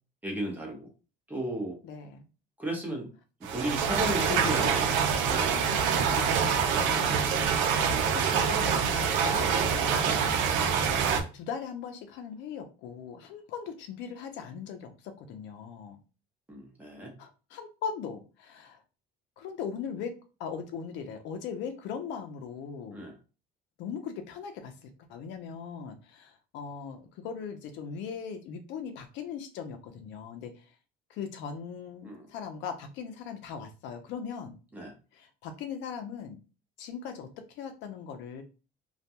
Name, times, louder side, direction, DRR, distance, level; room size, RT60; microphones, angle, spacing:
voice 1, 0.2-0.9 1.3-1.8 2.6-3.1 3.5-4.9 5.2-5.6 6.8-7.1 16.5-17.1 22.9-23.1 32.0-32.3 34.7-34.9, right 1 dB, 10° right, -1 dB, 0.8 m, -35 dB
voice 2, 1.8-2.2 4.3-4.7 5.5-7.2 7.8-10.4 11.3-16.0 17.2-18.8 19.4-20.1 20.4-23.0 23.8-30.7 31.1-34.6 35.1-36.4 36.8-38.4, left 6 dB, 80° left, 6 dB, 0.6 m, -39 dB
sound 1, 3.4-11.2, right 6 dB, 90° right, 0.5 m, -26 dB
2.3 x 2.2 x 2.8 m, 0.33 s
cardioid pair, 145°, 19 cm